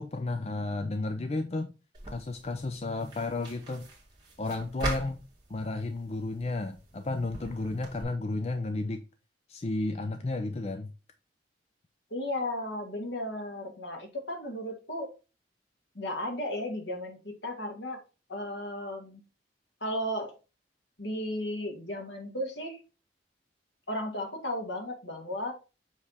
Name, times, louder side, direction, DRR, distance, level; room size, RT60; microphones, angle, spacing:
voice 1, 0.0-1.7 2.1-3.9 4.4-5.2 5.5-9.0 9.5-10.9, left 2 dB, 35° left, 0.5 m, -32 dB
sound 1, 1.9-8.0, right 1 dB, 25° right, 2.1 m, -41 dB
voice 2, 12.1-15.1 15.9-18.0 18.3-19.2 19.8-20.4 21.0-22.8 23.9-25.5, left 1 dB, 80° left, 2.1 m, -35 dB
7.2 x 3.3 x 4.1 m
head